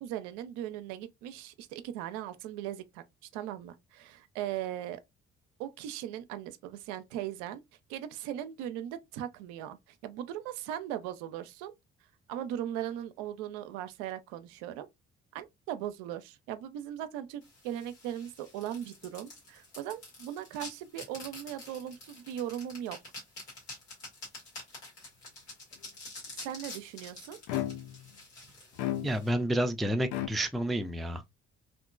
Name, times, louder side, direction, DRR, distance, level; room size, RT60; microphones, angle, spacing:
voice 1, 0.0-3.0 3.3-5.0 5.6-7.6 7.9-11.7 12.3-14.9 15.3-23.0 26.4-27.4, right 11 dB, 70° right, 0.5 m, -38 dB
sound 1, 17.4-29.3, left 2 dB, 90° left, 1.4 m, -48 dB
sound 2, 27.5-28.1 28.8-29.5 30.1-30.3, left 13 dB, 65° left, 0.5 m, -33 dB
voice 2, 29.0-31.4, right 1 dB, ahead, 0.3 m, -30 dB
2.8 x 2.4 x 2.2 m
hypercardioid pair, 50°, 32 cm